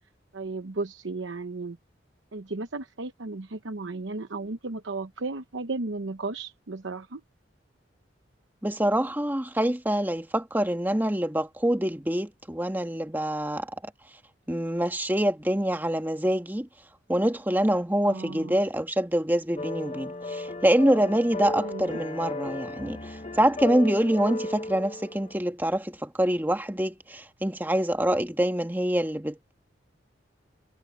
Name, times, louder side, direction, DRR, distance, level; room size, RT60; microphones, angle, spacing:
voice 1, 0.3-1.8 2.3-7.2 18.0-18.6 21.6-21.9, right 3 dB, 85° right, 0.9 m, -34 dB
voice 2, 8.6-13.7 14.5-16.7 17.1-29.5, right 1 dB, 10° right, 1.5 m, -25 dB
sound 1, 19.6-25.4, left 2 dB, 35° left, 1.0 m, -35 dB
head